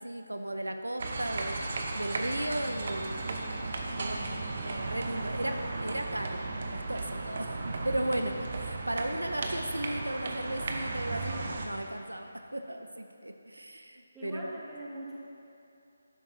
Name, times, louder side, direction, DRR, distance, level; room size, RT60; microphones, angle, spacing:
voice 1, 0.0-1.6 1.9-3.2 4.0-4.3 4.6-5.5 5.8-6.4 6.7-14.5, right 1 dB, 90° right, 6 dB, 0.6 m, -35 dB
sound 1, 1.0-11.7, right 3 dB, 50° right, 0.9 m, -35 dB
voice 2, 14.1-15.2, right 1 dB, 10° right, -7 dB, 1.3 m, -42 dB
11.0 x 8.4 x 2.8 m, 2.8 s
figure-of-eight pair, 155°, 0 cm